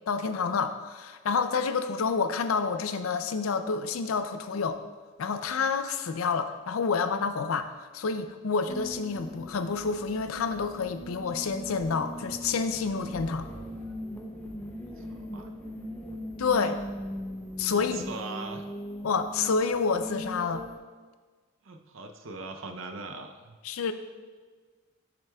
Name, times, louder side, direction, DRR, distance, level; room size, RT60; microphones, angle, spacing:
voice 1, 0.1-4.8 5.2-7.7 7.9-13.5 16.4-16.8 17.6-18.0 19.0-20.7 23.6-23.9, left 5 dB, 85° left, 10 dB, 0.5 m, -28 dB
sound 1, 8.7-20.8, equal, 5° left, 0.6 m, -40 dB
voice 2, 14.8-15.5 16.6-16.7 17.7-18.6 21.6-23.6, right 3 dB, 70° right, 5 dB, 0.6 m, -41 dB
7.7 x 7.4 x 2.3 m, 1.5 s
head